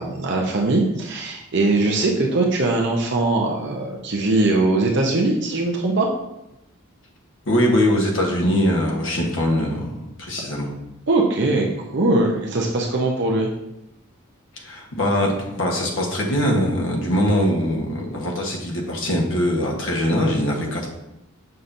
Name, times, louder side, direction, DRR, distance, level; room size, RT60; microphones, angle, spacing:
voice 1, 0.0-6.1 11.1-11.7 11.9-13.5, right 2 dB, 55° right, -1 dB, 0.7 m, -21 dB
voice 2, 7.5-9.9 10.2-10.7 14.6-20.9, equal, 65° left, -1 dB, 1.2 m, -22 dB
6.6 x 5.6 x 2.6 m, 0.88 s
head